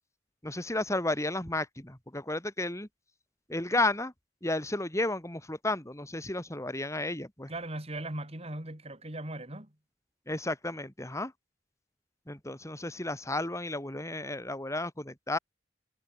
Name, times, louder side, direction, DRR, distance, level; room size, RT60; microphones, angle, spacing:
voice 1, 0.4-2.9 3.5-4.1 4.4-7.5 10.3-11.3 12.3-15.4, left 2 dB, 15° left, 3.4 m, -32 dB
voice 2, 7.5-9.8, right 1 dB, 35° right, 5.1 m, -38 dB
head